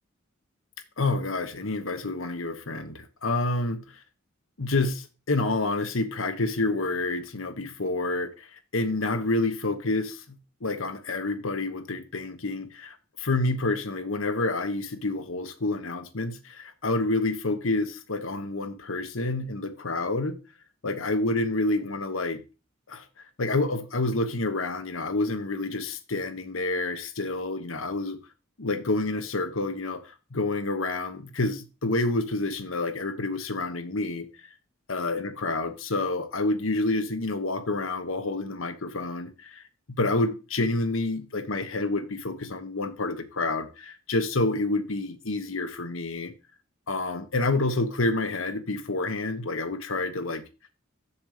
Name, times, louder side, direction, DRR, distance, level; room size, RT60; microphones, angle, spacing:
voice 1, 1.0-4.0 4.6-10.4 10.6-20.4 20.8-22.4 22.9-23.0 23.4-28.2 28.6-34.3 34.9-39.6 40.0-46.3 46.9-50.4, left 2 dB, 80° left, 1.2 m, -28 dB
7.1 x 7.0 x 4.9 m
head